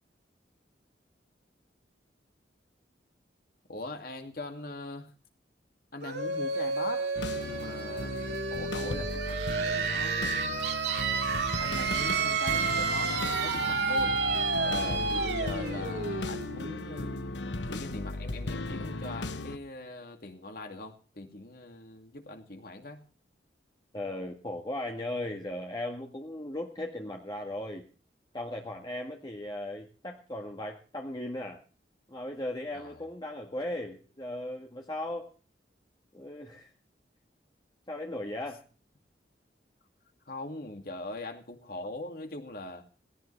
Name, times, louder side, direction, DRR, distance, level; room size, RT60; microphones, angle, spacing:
voice 1, 3.7-5.1 5.9-7.1 7.4-8.2 8.5-10.6 11.6-14.2 15.1-17.1 17.7-23.0 32.7-33.0 40.3-42.8, left 2 dB, 55° left, 2.4 m, -41 dB
sound 1, 6.0-17.5, right 4 dB, 75° right, 3.0 m, -31 dB
sound 2, 7.1-19.6, left 2 dB, 85° left, 1.1 m, -36 dB
voice 2, 14.6-15.1 23.9-27.8 28.3-31.6 32.1-35.3 36.1-36.7 37.9-38.6, left 1 dB, 25° left, 1.7 m, -37 dB
17.5 x 17.0 x 3.3 m
head